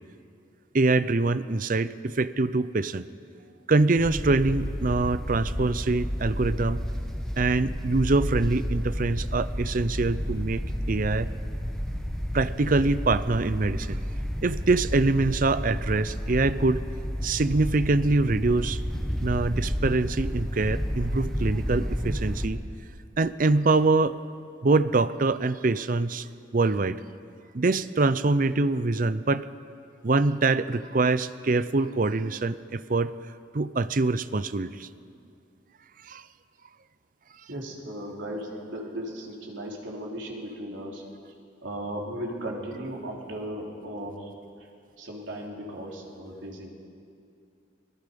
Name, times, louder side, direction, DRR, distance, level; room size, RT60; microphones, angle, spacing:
voice 1, 0.7-3.1 3.7-6.8 7.4-10.6 10.9-11.3 12.3-14.0 14.4-16.8 17.2-18.8 19.2-22.6 23.2-24.2 24.6-26.3 26.5-27.0 27.5-29.5 30.0-33.1 33.5-34.9 36.0-36.2, right 3 dB, 45° right, 14 dB, 0.6 m, -24 dB
sound 1, 4.0-22.5, equal, 5° left, 1.5 m, -31 dB
voice 2, 37.5-41.3 41.6-44.7 45.0-46.7, right 1 dB, 85° right, -2 dB, 3.6 m, -36 dB
26.0 x 18.5 x 5.4 m, 2.4 s
head